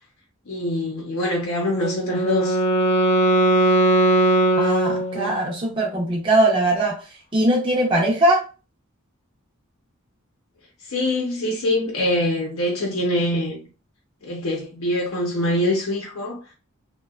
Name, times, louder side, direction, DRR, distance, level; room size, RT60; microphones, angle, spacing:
voice 1, 0.5-2.6 10.9-13.6 14.2-16.4, left 1 dB, 80° left, 0.7 m, -24 dB
Wind instrument woodwind instrument, 1.7-5.6, right 2 dB, 30° left, 0.3 m, -19 dB
voice 2, 4.6-6.9 7.3-8.4, right 1 dB, 25° right, 0.6 m, -20 dB
2.8 x 2.2 x 2.3 m
head